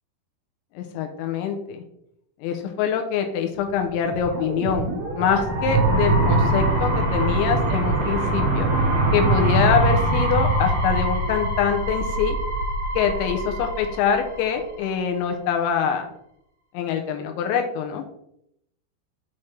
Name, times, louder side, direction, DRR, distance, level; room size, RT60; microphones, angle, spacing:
voice 1, 0.8-1.8 2.4-8.7 9.1-12.4 13.0-16.1 16.7-18.0, left 7 dB, 80° left, 5 dB, 2.8 m, -24 dB
sound 1, 3.9-14.8, right 2 dB, 80° right, 1.2 m, -23 dB
6.1 x 5.7 x 3.2 m, 0.78 s
omnidirectional pair, 5.4 m